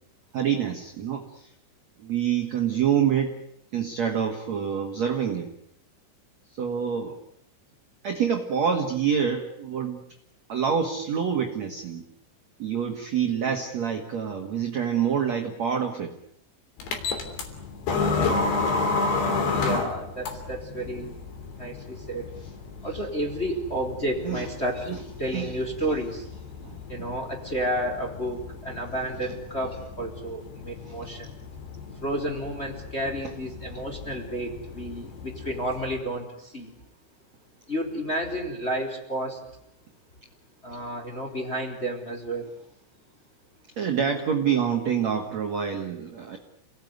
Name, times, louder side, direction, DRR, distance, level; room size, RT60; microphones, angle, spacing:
voice 1, 0.3-1.5 2.0-3.3 3.7-5.5 6.6-7.1 8.0-10.0 10.5-12.0 12.6-16.1 24.2-24.5 24.9-25.0 25.3-25.5 30.9-31.0 43.8-46.4, right 7 dB, 55° right, 3 dB, 2.1 m, -26 dB
sound 1, 16.8-36.0, left 3 dB, 55° left, 5.1 m, -32 dB
voice 2, 19.5-21.1 21.5-22.4 22.8-24.9 25.2-26.3 26.9-31.3 32.0-36.7 37.7-39.4 40.6-42.5, right 1 dB, 15° left, 1 dB, 3.4 m, -31 dB
29.0 x 18.5 x 9.6 m, 0.78 s
omnidirectional pair, 6.0 m